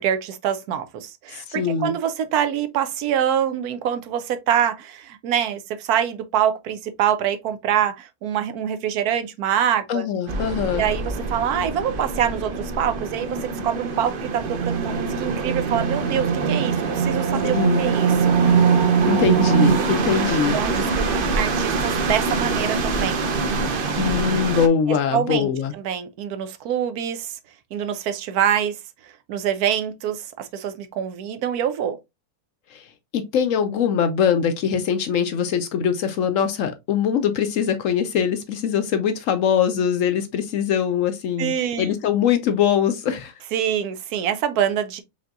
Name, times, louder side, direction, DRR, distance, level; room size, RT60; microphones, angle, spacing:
voice 1, 0.0-10.0 10.7-18.4 20.5-23.3 24.9-27.4 27.7-28.8 29.0-32.0 41.4-41.9 43.5-45.0, right 9 dB, 80° right, 1.1 m, -25 dB
voice 2, 1.3-1.9 9.9-10.8 17.5-17.8 19.1-20.6 24.0-25.7 32.7-32.8 33.1-41.5 41.8-43.3, left 8 dB, 70° left, 0.8 m, -22 dB
sound 1, 10.3-24.7, right 5 dB, 55° right, 0.6 m, -23 dB
5.2 x 2.8 x 2.4 m
omnidirectional pair, 1.6 m